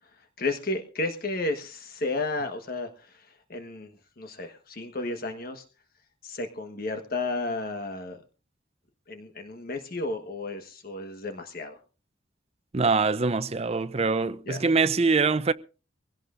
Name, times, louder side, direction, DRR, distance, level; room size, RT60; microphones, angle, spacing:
voice 1, 0.2-3.9 4.2-5.6 6.2-8.2 9.1-11.8 14.4-14.6, left 2 dB, 50° left, 1.3 m, -33 dB
voice 2, 12.7-15.5, right 4 dB, 35° right, 0.6 m, -24 dB
22.5 x 17.0 x 2.5 m
head